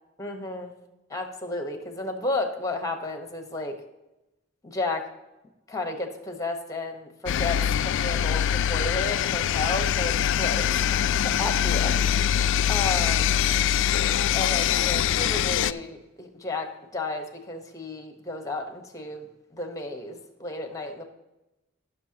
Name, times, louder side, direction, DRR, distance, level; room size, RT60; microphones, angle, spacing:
voice 1, 0.2-0.7 1.1-3.8 4.6-5.1 5.7-12.1 12.7-13.3 14.3-21.0, left 2 dB, 15° left, 6 dB, 1.1 m, -33 dB
sound 1, 7.3-15.7, left 9 dB, 65° left, 0.3 m, -23 dB
15.5 x 6.6 x 2.9 m, 0.97 s
head